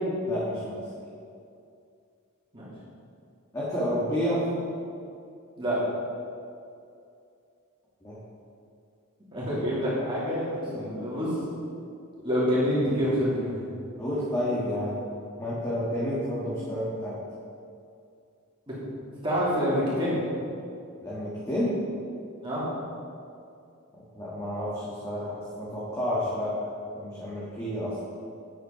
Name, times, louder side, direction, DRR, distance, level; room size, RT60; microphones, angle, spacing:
voice 1, 0.3-0.7 3.5-4.4 8.0-8.2 14.0-15.0 15.4-17.2 21.0-21.8 24.1-28.0, equal, 15° left, -8 dB, 1.7 m, -30 dB
voice 2, 9.3-11.3 12.2-13.6 18.7-18.8 19.2-20.2 22.4-22.7, equal, 25° right, -9 dB, 2.7 m, -27 dB
9.2 x 6.6 x 5.8 m, 2.5 s
head